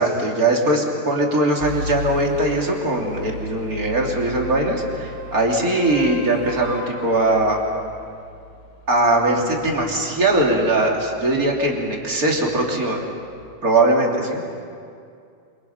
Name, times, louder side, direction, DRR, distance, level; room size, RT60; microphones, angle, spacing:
voice 1, 0.0-7.6 8.9-13.0 13.6-14.4, right 2 dB, 25° right, -1 dB, 3.1 m, -20 dB
sound 1, 1.6-13.5, left 1 dB, 85° left, 3.0 m, -37 dB
sound 2, 2.5-8.2 12.3-12.4, left 3 dB, 10° left, 5.6 m, -38 dB
27.5 x 27.0 x 5.8 m, 2.4 s
omnidirectional pair, 4.2 m